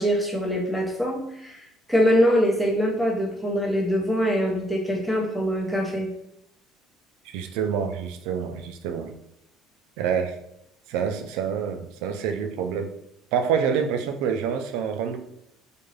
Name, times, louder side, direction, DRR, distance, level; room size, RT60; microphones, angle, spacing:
voice 1, 0.0-1.6 1.9-6.1, equal, ahead, -2 dB, 0.7 m, -23 dB
voice 2, 7.3-9.1 10.0-10.3 10.9-12.9 13.3-15.2, right 7 dB, 80° right, 7 dB, 0.3 m, -27 dB
2.4 x 2.2 x 3.1 m, 0.79 s
cardioid pair, 120°, 0 cm